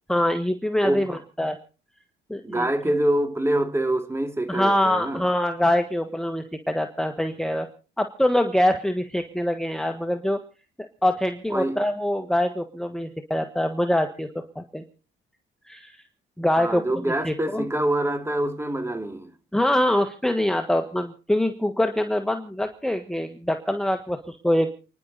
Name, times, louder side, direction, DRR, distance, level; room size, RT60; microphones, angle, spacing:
voice 1, 0.1-1.6 2.3-2.7 4.5-7.7 8.0-10.4 11.0-14.3 14.5-14.8 15.7-15.9 16.4-16.8 17.2-17.6 19.5-24.7, left 1 dB, 5° left, 1.4 m, -24 dB
voice 2, 0.8-1.2 2.4-5.3 11.5-11.8 16.6-19.3, right 1 dB, 15° right, 2.4 m, -25 dB
29.0 x 10.5 x 4.1 m
cardioid pair, 90°, 20 cm